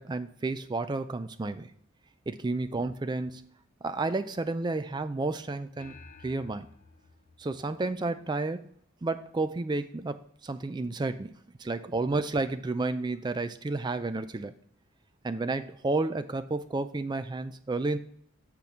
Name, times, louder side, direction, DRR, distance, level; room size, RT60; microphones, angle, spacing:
voice 1, 0.0-1.7 2.3-3.5 3.8-5.9 6.2-6.7 7.4-8.6 9.0-11.3 11.6-14.5 15.2-18.0, right 3 dB, 20° right, 10 dB, 0.3 m, -31 dB
sound 1, 5.8-8.4, left 4 dB, 40° left, 0.6 m, -53 dB
6.8 x 6.0 x 3.6 m, 0.65 s
head